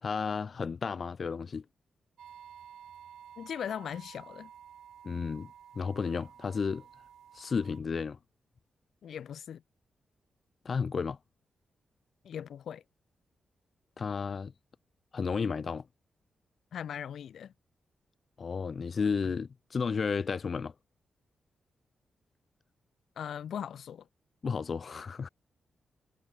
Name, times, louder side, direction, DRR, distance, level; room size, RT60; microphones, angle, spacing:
voice 1, 0.0-1.6 5.0-6.8 7.3-8.2 10.6-11.2 14.0-14.5 15.1-15.9 18.4-20.7 24.4-25.3, left 5 dB, 40° left, 2.6 m, -32 dB
sound 1, 2.2-7.8, right 9 dB, 80° right, 6.3 m, -52 dB
voice 2, 3.4-4.5 9.0-9.6 12.2-12.8 16.7-17.5 23.2-24.1, left 9 dB, 75° left, 3.5 m, -39 dB
wide cardioid pair, 145°, 0 cm